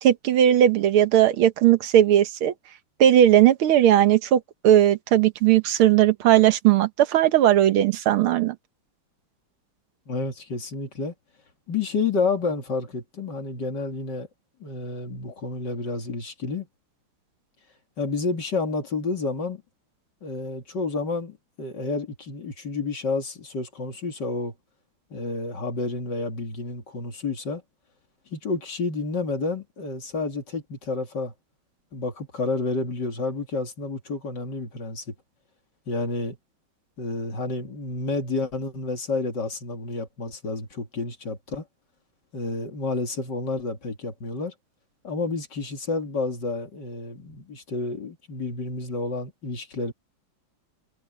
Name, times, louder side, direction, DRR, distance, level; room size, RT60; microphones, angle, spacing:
voice 1, 0.0-2.5 3.0-8.6, right 11 dB, 90° right, 1.9 m, -18 dB
voice 2, 10.1-11.1 11.7-14.3 14.6-16.7 18.0-19.6 20.2-24.5 25.1-27.6 28.3-31.3 31.9-35.1 35.9-36.4 37.0-41.7 42.3-44.5 45.0-49.9, left 3 dB, 55° left, 3.0 m, -30 dB
omnidirectional pair, 2.3 m